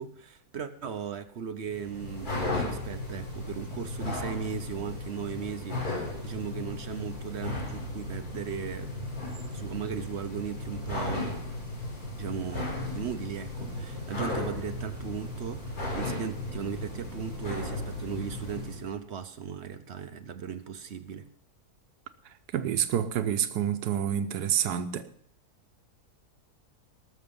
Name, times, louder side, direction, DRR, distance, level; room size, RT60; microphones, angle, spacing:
voice 1, 0.0-8.9 9.5-11.4 12.2-21.3, right 7 dB, 55° right, 0.8 m, -37 dB
sound 1, 1.7-18.9, left 2 dB, 75° left, 6.8 m, -35 dB
voice 2, 22.5-25.1, right 9 dB, 85° right, 1.3 m, -28 dB
19.5 x 6.7 x 5.3 m
omnidirectional pair, 1.7 m